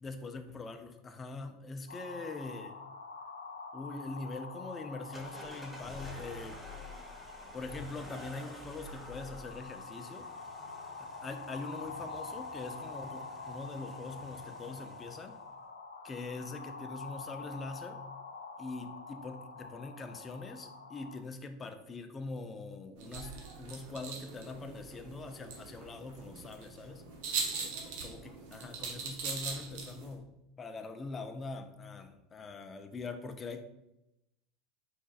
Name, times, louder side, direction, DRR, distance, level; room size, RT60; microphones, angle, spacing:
voice 1, 0.0-2.8 3.7-6.6 7.5-10.3 11.0-15.4 16.0-18.0 18.6-27.1 27.5-27.7 28.0-30.3 30.6-33.6, left 3 dB, 25° left, 7 dB, 0.5 m, -43 dB
sound 1, 1.9-21.2, left 3 dB, 90° left, 0.4 m, -46 dB
sound 2, 5.1-15.4, left 1 dB, 5° right, 1.2 m, -50 dB
sound 3, 23.0-30.2, right 5 dB, 60° right, 0.9 m, -41 dB
4.4 x 4.3 x 2.4 m, 0.87 s
hypercardioid pair, 80°, 0 cm